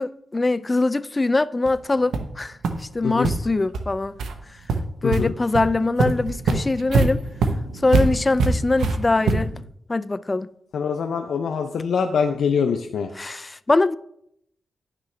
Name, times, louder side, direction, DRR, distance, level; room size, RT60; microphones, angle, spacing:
voice 1, 0.0-4.2 5.0-7.2 7.8-9.5 9.9-10.5 13.1-14.0, left 2 dB, 30° left, 0.4 m, -22 dB
sound 1, 1.6-1.7 2.1-2.3 2.6-2.7 3.2-3.3 3.7-3.8 4.2-4.3 4.7-5.2 5.5-5.6 6.0-9.6, right 4 dB, 90° right, 0.8 m, -23 dB
voice 2, 10.7-13.1, left 6 dB, 80° left, 0.5 m, -24 dB
10.0 x 6.0 x 3.2 m
cardioid pair, 70°, 0 cm